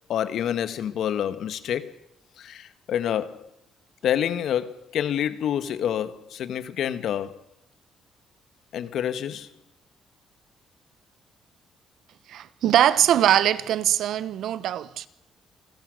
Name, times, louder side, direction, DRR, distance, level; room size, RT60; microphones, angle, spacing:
voice 1, 0.1-1.9 2.4-3.5 4.0-7.4 8.7-9.5, left 10 dB, 75° left, 1.4 m, -28 dB
voice 2, 12.3-15.1, right 11 dB, 75° right, 1.0 m, -22 dB
28.0 x 15.5 x 6.5 m
cardioid pair, 90°, 0 cm